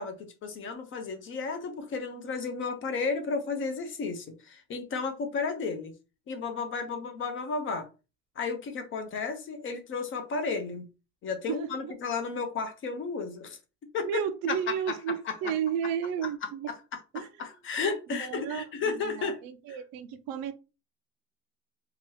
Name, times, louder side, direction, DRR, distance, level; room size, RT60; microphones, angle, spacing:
voice 1, 0.0-5.9 6.3-7.9 8.4-10.9 11.2-13.6 13.9-14.2 14.5-15.0 15.2-15.5 17.1-19.4 19.7-19.8, left 4 dB, 35° left, 0.5 m, -33 dB
voice 2, 11.5-11.9 14.0-16.7 17.1-17.3 18.2-20.5, right 8 dB, 65° right, 0.5 m, -33 dB
2.8 x 2.3 x 3.1 m
cardioid pair, 150°, 38 cm